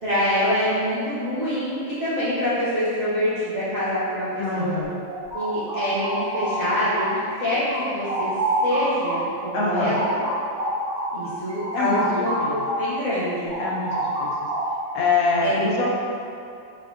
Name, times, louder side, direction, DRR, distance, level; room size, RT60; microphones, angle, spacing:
voice 1, 0.0-4.7 5.3-7.0 7.4-8.3 8.6-10.2 11.1-13.5 15.4-15.7, equal, 80° right, -14 dB, 0.4 m, -25 dB
voice 2, 4.4-5.0 9.5-10.0 11.7-12.7 13.6-14.5 14.9-16.0, left 3 dB, 70° left, -4 dB, 0.9 m, -25 dB
sound 1, 5.1-7.4 7.7-12.9 13.2-14.9, right 1 dB, 35° right, 0.7 m, -28 dB
3.5 x 3.2 x 2.4 m, 2.5 s
omnidirectional pair, 2.0 m